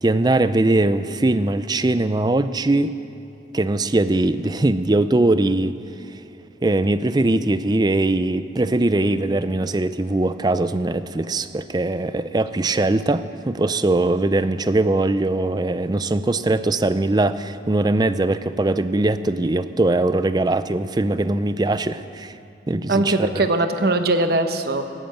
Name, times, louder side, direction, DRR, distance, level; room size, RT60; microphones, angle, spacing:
voice 1, 0.0-2.9 3.5-5.8 6.6-22.3 22.7-23.5, right 2 dB, 20° right, 13 dB, 0.4 m, -21 dB
voice 2, 22.9-24.8, right 2 dB, 55° right, 7 dB, 0.9 m, -20 dB
17.5 x 10.5 x 7.8 m, 2.9 s
head